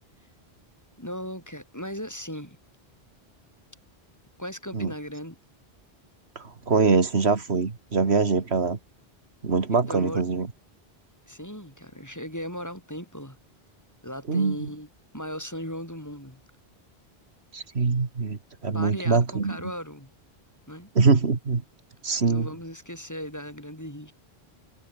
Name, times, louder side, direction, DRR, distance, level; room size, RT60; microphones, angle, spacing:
voice 1, 1.0-2.6 4.4-5.4 9.9-10.2 11.3-13.4 14.0-14.9 15.1-16.4 18.7-20.1 20.7-20.9 22.3-24.1, equal, 15° left, 6.1 m, -37 dB
voice 2, 6.4-8.8 9.4-10.5 14.3-14.7 17.5-19.6 21.0-21.6 22.0-22.5, right 4 dB, 85° right, 2.3 m, -23 dB
omnidirectional pair, 1.1 m